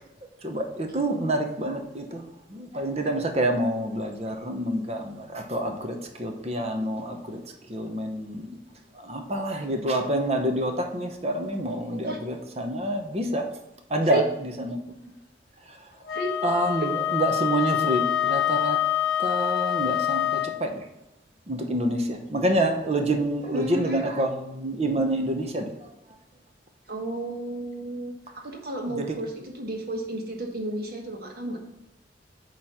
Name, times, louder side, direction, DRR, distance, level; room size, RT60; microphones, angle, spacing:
voice 1, 0.4-2.2 2.5-7.4 7.7-8.5 8.9-13.5 13.9-14.8 15.7-15.8 16.4-18.8 19.2-20.8 21.5-25.7 28.9-29.1, right 1 dB, 35° right, 5 dB, 0.8 m, -27 dB
Wind instrument woodwind instrument, 16.1-20.6, left 11 dB, 60° left, 0.6 m, -26 dB
voice 2, 23.5-24.0 26.9-31.6, right 2 dB, 55° right, 1 dB, 1.4 m, -33 dB
8.7 x 3.1 x 5.6 m, 0.96 s
head